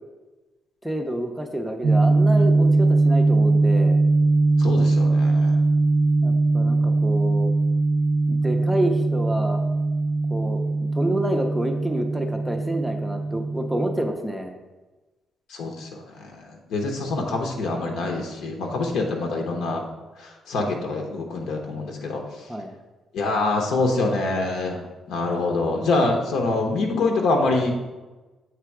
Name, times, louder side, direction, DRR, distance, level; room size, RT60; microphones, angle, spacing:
voice 1, 0.8-4.0 6.2-7.5 8.3-9.6 10.3-14.5 20.6-20.8 22.5-22.7, right 1 dB, ahead, 4 dB, 0.5 m, -28 dB
sound 1, 1.8-14.1, right 3 dB, 60° right, 0.4 m, -21 dB
voice 2, 4.6-5.5 13.4-13.5 15.5-16.4 16.7-19.9 20.2-22.2 23.1-24.8 25.1-27.8, left 3 dB, 75° left, 2 dB, 0.9 m, -25 dB
7.5 x 3.4 x 4.7 m, 1.2 s
cardioid pair, 175°, 0 cm